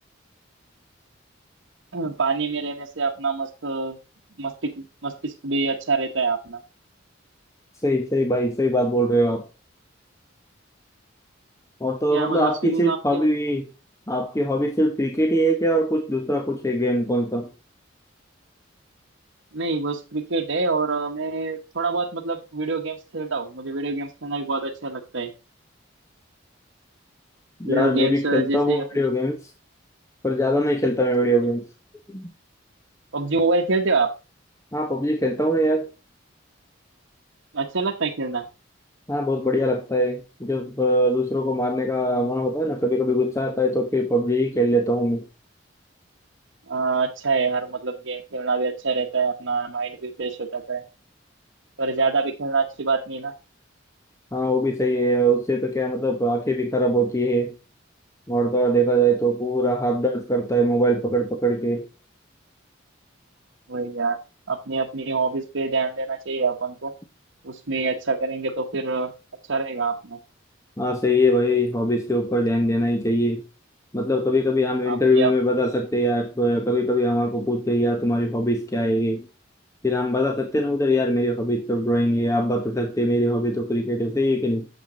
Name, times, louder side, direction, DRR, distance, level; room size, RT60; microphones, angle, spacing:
voice 1, 1.9-4.0 4.4-6.6 12.1-13.3 19.5-25.3 27.6-29.0 33.1-34.1 37.5-38.5 42.0-42.3 46.7-50.8 51.8-53.3 63.7-64.2 64.5-66.9 67.4-69.1 69.5-70.2 74.9-75.3, right 3 dB, 75° right, 1.0 m, -26 dB
voice 2, 7.8-9.5 11.8-13.7 14.1-17.5 27.6-29.4 30.2-31.6 32.1-32.3 34.7-35.9 39.1-45.3 54.3-57.5 58.3-61.9 70.8-73.4 73.9-79.2 79.8-84.7, equal, 15° left, 0.8 m, -22 dB
9.1 x 7.0 x 3.7 m
head